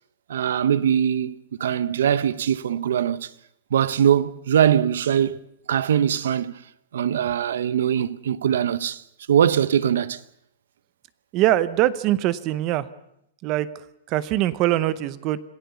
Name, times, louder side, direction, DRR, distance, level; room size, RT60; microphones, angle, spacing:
voice 1, 0.3-1.3 1.6-3.3 3.7-5.4 5.7-6.5 6.9-9.0 9.3-10.2, right 9 dB, 75° right, 0.9 m, -21 dB
voice 2, 11.3-12.9 13.4-13.7 14.1-15.4, right 14 dB, 25° right, 0.7 m, -22 dB
27.0 x 15.5 x 7.0 m
supercardioid pair, 180°, 0 cm